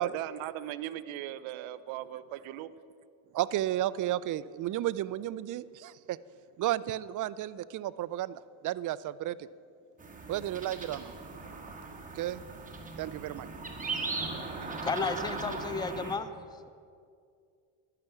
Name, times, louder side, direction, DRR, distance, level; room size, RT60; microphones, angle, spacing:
voice 1, 0.0-2.7, right 13 dB, 80° right, 14 dB, 0.7 m, -38 dB
voice 2, 3.3-6.2 6.6-9.5 10.3-11.1 12.1-12.4 13.0-13.5 14.7-14.8, right 13 dB, 45° right, 17 dB, 0.4 m, -33 dB
sound 1, 10.0-16.2, right 3 dB, 15° right, 1.6 m, -38 dB
voice 3, 14.8-16.3, left 4 dB, 10° left, 12 dB, 0.5 m, -32 dB
12.0 x 5.9 x 9.1 m, 2.3 s
cardioid pair, 90°, 47 cm